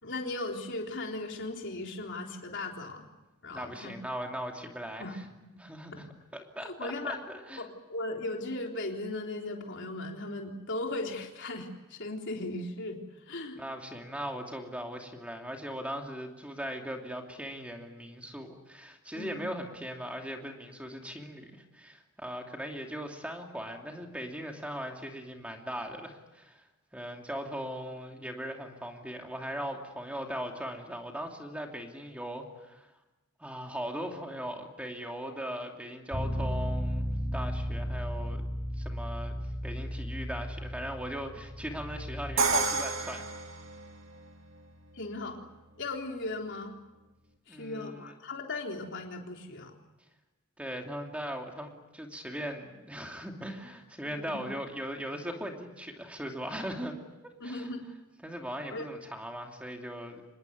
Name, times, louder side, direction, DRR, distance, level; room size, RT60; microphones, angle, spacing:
voice 1, 0.0-3.1 3.4-3.9 5.0-5.6 5.9-6.1 6.6-7.2 7.6-13.6 19.2-19.4 44.9-45.4 45.8-46.7 47.5-49.8 54.2-54.4 57.4-57.8 58.7-58.9, left 2 dB, 55° left, 2 dB, 3.8 m, -37 dB
voice 2, 3.5-5.0 5.6-6.1 6.5-7.7 13.6-26.6 26.9-32.9 33.4-38.4 38.8-43.3 47.5-48.1 50.6-56.9 57.4-57.6 58.2-60.2, equal, 5° right, 2 dB, 2.8 m, -39 dB
Bass guitar, 36.1-42.4, equal, 15° left, 5.8 m, -34 dB
Crash cymbal, 42.4-44.3, right 3 dB, 60° right, 2.3 m, -29 dB
26.0 x 21.0 x 9.4 m, 1.1 s
head